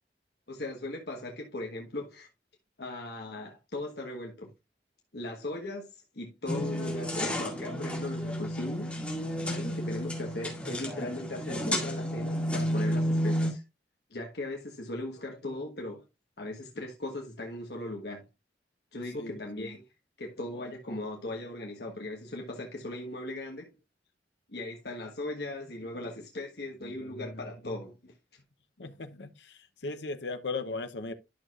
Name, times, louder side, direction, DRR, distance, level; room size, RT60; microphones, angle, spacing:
voice 1, 0.5-2.3 2.8-4.5 5.1-9.0 9.5-13.6 14.1-16.0 16.4-18.3 18.9-19.8 20.2-23.7 24.5-28.1, left 2 dB, 65° left, 1.3 m, -38 dB
sound 1, 6.5-13.5, equal, 5° left, 2.1 m, -31 dB
voice 2, 19.1-19.8 28.8-31.1, left 3 dB, 80° left, 0.8 m, -37 dB
11.5 x 6.3 x 2.4 m
head